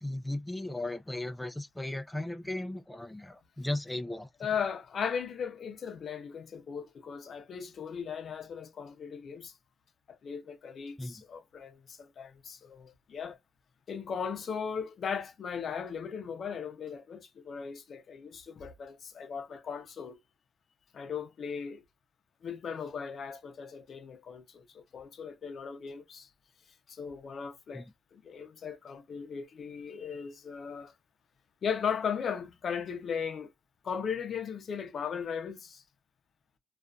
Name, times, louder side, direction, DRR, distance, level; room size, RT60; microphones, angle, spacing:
voice 1, 0.0-4.3 11.0-11.1 27.7-27.9, left 1 dB, 10° left, 0.4 m, -36 dB
voice 2, 4.4-9.5 10.1-13.4 13.9-20.2 20.9-21.8 22.4-26.3 26.9-27.8 28.1-30.9 31.6-33.5 33.8-35.8, left 7 dB, 65° left, 0.6 m, -37 dB
2.4 x 2.4 x 2.2 m
cardioid pair, 70°, 0 cm